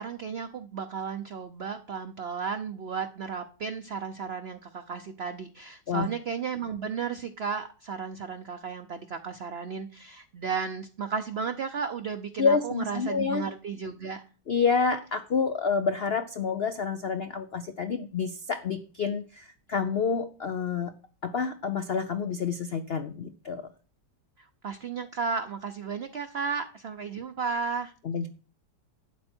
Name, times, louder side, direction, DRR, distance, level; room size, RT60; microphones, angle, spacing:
voice 1, 0.0-14.2 24.6-27.9, right 6 dB, 55° right, 7 dB, 0.7 m, -34 dB
voice 2, 12.4-13.4 14.5-20.9 21.2-23.7 28.0-28.3, left 5 dB, 85° left, 9 dB, 0.5 m, -28 dB
12.0 x 8.9 x 4.4 m, 0.39 s
omnidirectional pair, 2.0 m